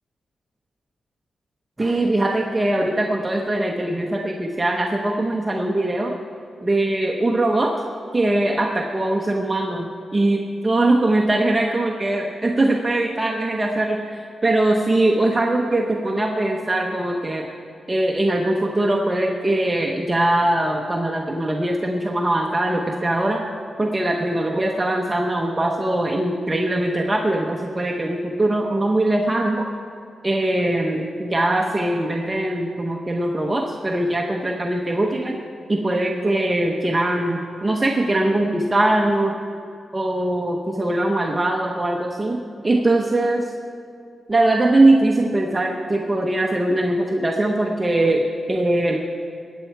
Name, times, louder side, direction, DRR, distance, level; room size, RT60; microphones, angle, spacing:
voice 1, 1.8-6.1 6.6-7.7 8.1-17.5 17.9-23.4 23.8-29.6 30.2-35.4 35.7-39.3 39.9-43.5 44.3-49.0, right 1 dB, 20° right, 1 dB, 0.9 m, -21 dB
21.0 x 9.1 x 4.6 m, 2.5 s
wide cardioid pair, 110°, 0 cm